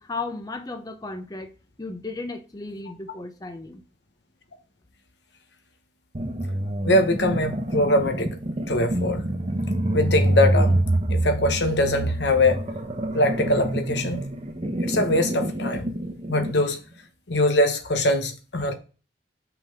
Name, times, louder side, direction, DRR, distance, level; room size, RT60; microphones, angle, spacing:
voice 1, 0.0-3.8, left 3 dB, 20° left, 0.7 m, -35 dB
sound 1, 6.1-16.6, right 1 dB, 35° right, 1.0 m, -26 dB
voice 2, 6.8-8.3 8.7-9.2 9.9-10.8 11.1-12.6 13.1-14.2 14.8-15.9 16.3-16.8 17.3-18.7, left 1 dB, 70° left, 1.0 m, -22 dB
5.8 x 3.9 x 5.1 m
head